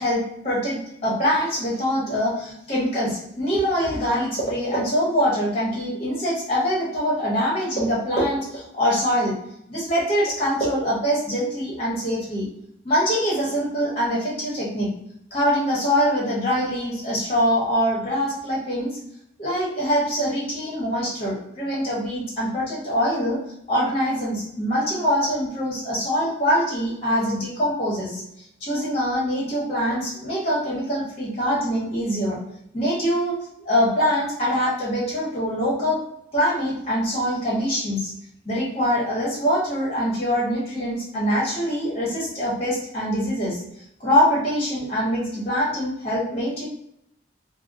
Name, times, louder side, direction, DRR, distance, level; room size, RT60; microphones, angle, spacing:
voice 1, 0.0-9.3 9.7-12.5 12.8-14.9 15.3-19.0 19.4-23.4 23.7-28.2 28.6-32.4 32.7-33.4 33.6-36.0 36.3-38.1 38.4-43.6 44.0-46.6, equal, 30° left, -5 dB, 1.1 m, -24 dB
3.4 x 2.1 x 2.6 m, 0.77 s
head